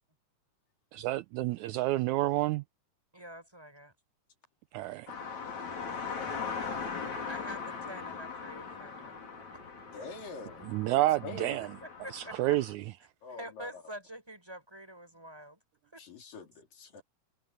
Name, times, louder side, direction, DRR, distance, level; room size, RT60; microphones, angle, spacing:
voice 1, 0.9-2.6 4.7-5.1 10.6-11.7 12.1-12.8, right 16 dB, 80° right, 1.8 m, -29 dB
voice 2, 3.1-3.9 7.2-9.2 11.8-12.6 13.3-15.6 15.9-16.0, equal, 5° right, 6.2 m, -46 dB
sound 1, 5.1-12.7, left 5 dB, 60° left, 5.3 m, -40 dB
voice 3, 9.9-11.7 13.2-13.8 16.0-17.0, left 3 dB, 85° left, 5.5 m, -45 dB
omnidirectional pair, 3.8 m